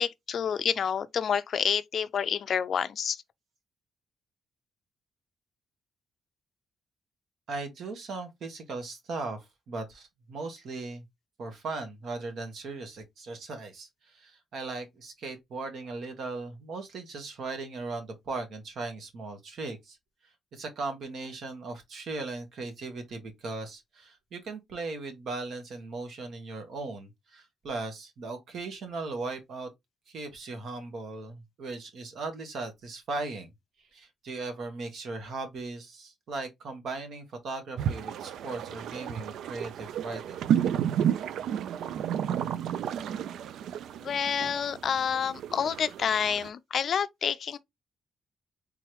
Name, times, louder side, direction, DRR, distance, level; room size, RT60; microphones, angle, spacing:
voice 1, 0.0-3.2 44.0-47.6, left 7 dB, 50° left, 0.4 m, -28 dB
voice 2, 7.5-11.0 11.4-20.0 20.5-29.7 30.1-33.5 33.9-40.4, right 3 dB, 60° right, 1.3 m, -38 dB
sound 1, 37.8-46.5, right 9 dB, 85° right, 0.3 m, -32 dB
3.6 x 3.1 x 3.0 m
cardioid pair, 150°, 0 cm